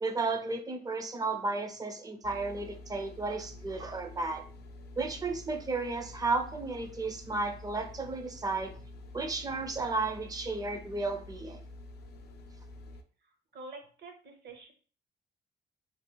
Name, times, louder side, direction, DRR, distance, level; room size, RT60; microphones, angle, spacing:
voice 1, 0.0-4.4 5.0-8.7 9.1-11.6, right 3 dB, 20° right, 5 dB, 0.4 m, -33 dB
sound 1, 2.2-13.0, left 2 dB, 55° left, 0.4 m, -48 dB
voice 2, 13.2-14.7, right 3 dB, 55° right, 4 dB, 0.7 m, -48 dB
2.9 x 2.2 x 2.2 m, 0.42 s
cardioid pair, 90°, 20 cm